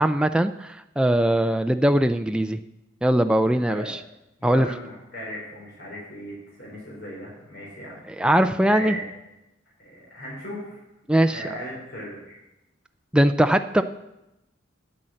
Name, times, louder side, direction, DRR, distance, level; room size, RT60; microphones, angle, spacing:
voice 1, 0.0-2.6 3.0-4.0 4.4-4.7 8.2-8.9 11.1-11.4 13.1-13.8, right 1 dB, 5° right, 7 dB, 0.3 m, -20 dB
voice 2, 3.5-3.9 4.4-8.0 8.6-9.1 9.8-10.8 11.3-12.4, equal, 55° left, -4 dB, 4.0 m, -37 dB
9.7 x 9.1 x 7.6 m, 0.92 s
head